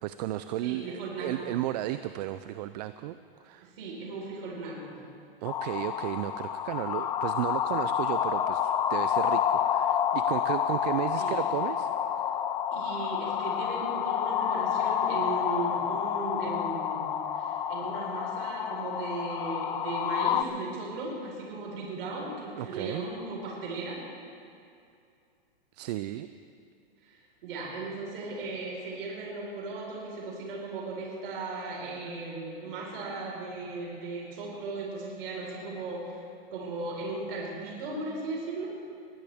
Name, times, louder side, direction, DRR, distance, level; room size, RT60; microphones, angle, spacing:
voice 1, 0.0-3.2 3.4-3.7 5.4-11.9 22.6-23.0 25.7-26.3, right 14 dB, 45° right, 12 dB, 0.5 m, -34 dB
voice 2, 0.6-1.5 3.6-5.0 11.2-11.4 12.7-24.0 27.0-38.7, right 3 dB, 65° right, -3 dB, 4.7 m, -37 dB
sound 1, 5.5-20.4, left 9 dB, 15° left, 0.3 m, -29 dB
21.5 x 17.0 x 3.6 m, 2.4 s
hypercardioid pair, 135°, 30 cm